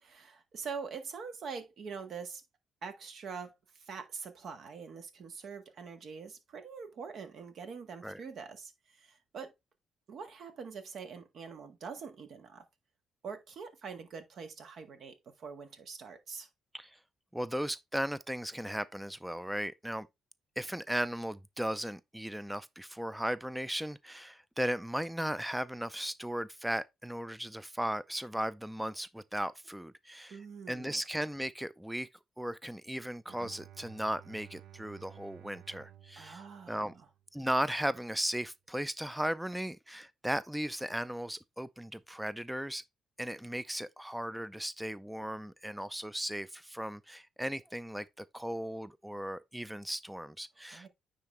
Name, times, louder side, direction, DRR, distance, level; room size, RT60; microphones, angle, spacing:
voice 1, 0.0-2.4 2.8-9.5 10.1-12.6 13.2-16.5 30.3-31.0 36.2-37.1 50.7-50.9, right 5 dB, 60° right, 1.6 m, -44 dB
voice 2, 17.3-20.1 20.6-30.4 30.7-32.1 32.4-36.4 36.7-36.9 37.3-42.8 43.2-50.9, equal, 5° right, 0.4 m, -36 dB
Bowed string instrument, 33.3-37.4, right 11 dB, 80° right, 0.7 m, -54 dB
9.5 x 3.9 x 3.3 m
cardioid pair, 90°, 0 cm